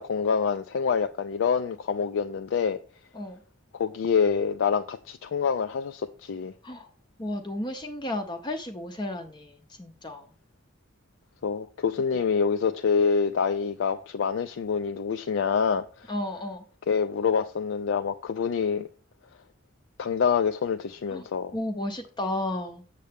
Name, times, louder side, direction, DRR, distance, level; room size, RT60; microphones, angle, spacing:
voice 1, 0.0-2.8 3.7-6.5 11.4-16.1 16.9-18.9 20.0-21.5, left 6 dB, 70° left, 0.4 m, -26 dB
voice 2, 7.2-10.3 16.1-16.6 21.1-21.3 21.5-22.8, left 1 dB, 20° left, 0.6 m, -33 dB
7.4 x 6.7 x 3.4 m
head